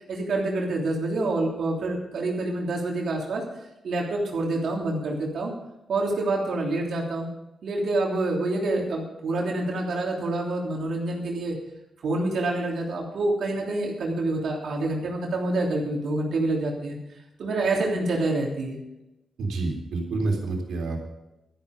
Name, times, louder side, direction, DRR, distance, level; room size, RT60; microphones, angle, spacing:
voice 1, 0.1-3.4 3.8-5.5 5.9-7.3 7.6-11.6 12.0-17.0 17.4-18.8, right 2 dB, 70° right, -1 dB, 3.2 m, -27 dB
voice 2, 19.4-21.0, right 3 dB, 85° right, 1 dB, 3.6 m, -28 dB
12.5 x 12.0 x 5.3 m, 0.93 s
wide cardioid pair, 115°, 0 cm